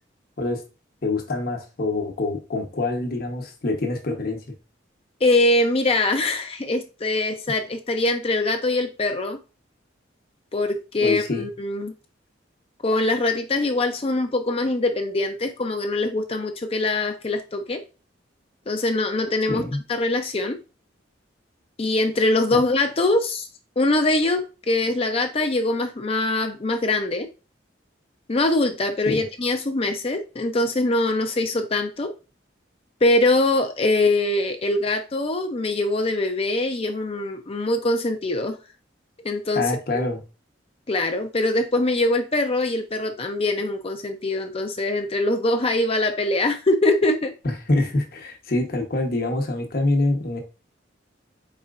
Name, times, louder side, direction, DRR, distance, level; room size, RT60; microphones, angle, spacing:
voice 1, 1.0-4.4 11.0-11.5 19.5-19.8 22.5-22.6 29.1-29.2 39.5-40.2 47.4-50.4, left 2 dB, 50° left, 3 dB, 1.0 m, -25 dB
voice 2, 5.2-9.4 10.5-11.9 12.8-17.8 18.7-20.6 21.8-23.5 23.8-27.3 28.3-32.1 33.0-38.6 39.2-39.6 40.9-47.3, left 2 dB, 30° left, 6 dB, 0.5 m, -23 dB
4.3 x 4.3 x 2.5 m, 0.31 s
head